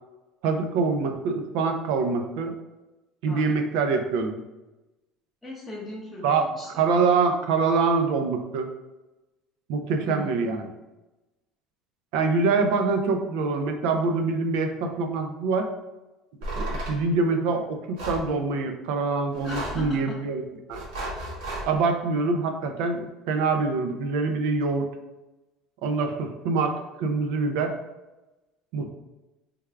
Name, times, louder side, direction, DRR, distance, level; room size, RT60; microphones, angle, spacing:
voice 1, 0.4-2.5 3.2-4.4 6.2-6.4 6.8-8.7 9.7-10.7 12.1-15.7 16.6-20.4 20.7-20.8 21.6-24.9 25.8-27.7 28.7-28.9, right 4 dB, 70° right, 5 dB, 0.4 m, -25 dB
voice 2, 5.4-6.9 10.0-10.5 19.4-20.2, left 1 dB, 5° left, -7 dB, 0.6 m, -38 dB
sound 1, 16.4-17.0 18.0-18.3 19.3-19.9 20.7-21.7, right 1 dB, 85° right, 1.2 m, -33 dB
3.4 x 2.3 x 3.3 m, 1.0 s
cardioid pair, 170°, 0 cm